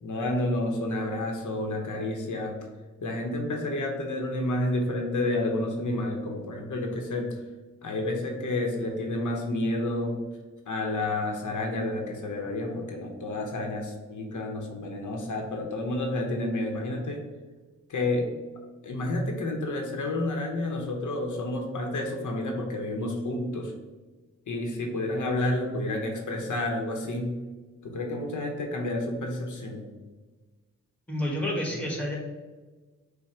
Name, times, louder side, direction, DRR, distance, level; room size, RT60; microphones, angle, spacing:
voice 1, 0.0-2.6 3.0-7.4 7.8-10.2 10.7-17.3 17.9-18.3 18.8-23.7 24.5-27.4 27.8-29.9, left 1 dB, 80° left, 1 dB, 0.8 m, -30 dB
voice 2, 31.1-32.2, left 1 dB, 5° left, -1 dB, 1.3 m, -29 dB
5.8 x 2.1 x 4.2 m, 1.3 s
wide cardioid pair, 75°, 30 cm